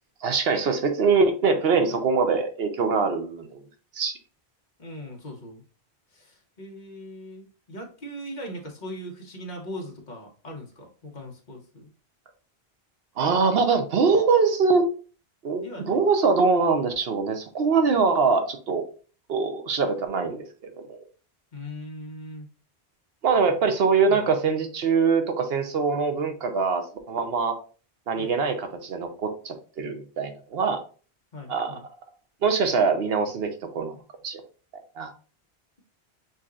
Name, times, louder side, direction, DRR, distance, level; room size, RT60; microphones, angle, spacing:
voice 1, 0.2-3.6 4.0-4.1 13.2-14.9 15.4-18.8 19.3-20.5 20.9-21.0 23.2-27.5 28.1-30.8 31.5-31.8 32.4-34.0 34.2-34.4 34.7-35.1, right 5 dB, 70° right, 6 dB, 1.0 m, -23 dB
voice 2, 4.8-5.6 6.1-11.9 15.6-16.0 21.5-22.5 23.5-23.6 24.1-24.3 28.1-28.3 31.3-31.9, equal, 45° left, 0 dB, 1.2 m, -40 dB
6.4 x 2.9 x 2.4 m, 0.38 s
omnidirectional pair, 1.1 m